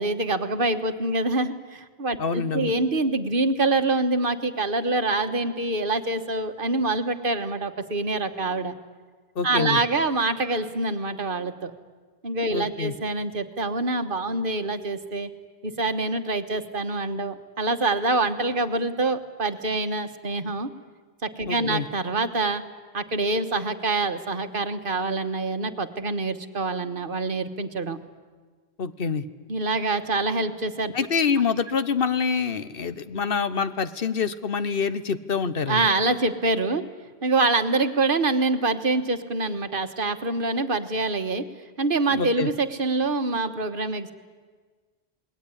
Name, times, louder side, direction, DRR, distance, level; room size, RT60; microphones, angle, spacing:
voice 1, 0.0-8.7 9.4-11.7 12.2-15.3 15.6-20.7 21.2-22.6 22.9-28.0 29.5-30.9 35.7-36.8 37.2-41.4 41.8-44.1, right 2 dB, 55° right, 9 dB, 1.6 m, -25 dB
voice 2, 2.2-2.7 9.4-9.8 12.5-12.9 21.5-21.8 28.8-29.2 30.9-35.8 42.1-42.5, left 5 dB, 60° left, 13 dB, 1.2 m, -26 dB
27.5 x 20.5 x 9.9 m, 1.5 s
omnidirectional pair, 1.1 m